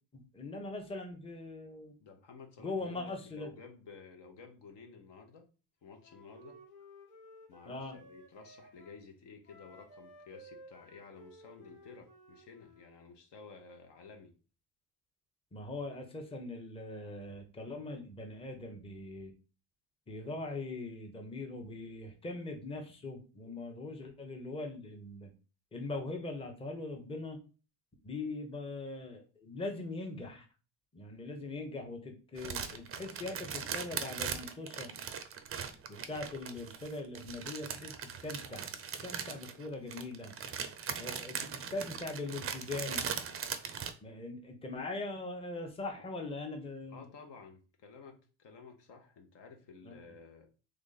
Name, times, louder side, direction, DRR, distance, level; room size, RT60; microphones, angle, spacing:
voice 1, 0.1-1.9 2.6-3.5 7.7-7.9 15.5-19.3 20.1-25.3 25.7-27.4 28.0-30.5 30.9-34.9 35.9-38.7 39.0-40.3 41.0-43.1 44.0-47.0 49.8-50.0, left 2 dB, 10° left, 3 dB, 0.8 m, -41 dB
voice 2, 2.0-5.5 5.8-6.6 7.5-14.3 46.9-50.5, left 5 dB, 55° left, 4 dB, 1.0 m, -53 dB
Wind instrument woodwind instrument, 6.0-9.0 9.4-12.9, equal, 85° left, 1.9 m, -56 dB
sound 1, 32.4-43.9, right 7 dB, 30° right, 0.5 m, -40 dB
3.3 x 2.4 x 3.9 m, 0.35 s
supercardioid pair, 75°, 49 cm